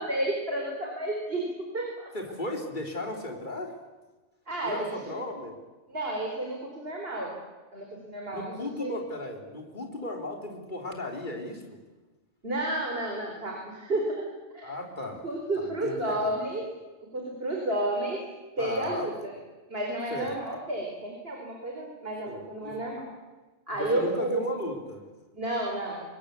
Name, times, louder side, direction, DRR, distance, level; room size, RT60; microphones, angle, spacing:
voice 1, 0.0-1.5 1.7-2.1 4.5-5.1 5.9-7.3 7.7-8.9 12.4-14.3 14.5-14.7 15.2-16.7 17.1-18.2 18.6-19.3 19.7-23.0 23.7-24.5 25.3-26.0, right 1 dB, 55° right, 0 dB, 4.5 m, -31 dB
voice 2, 2.1-3.8 4.6-5.5 8.3-11.8 14.6-15.2 15.6-16.4 18.6-19.1 20.1-20.3 22.3-22.8 23.7-25.0, left 1 dB, 40° left, 2 dB, 4.0 m, -36 dB
26.5 x 21.5 x 8.4 m, 1.2 s
omnidirectional pair, 1.2 m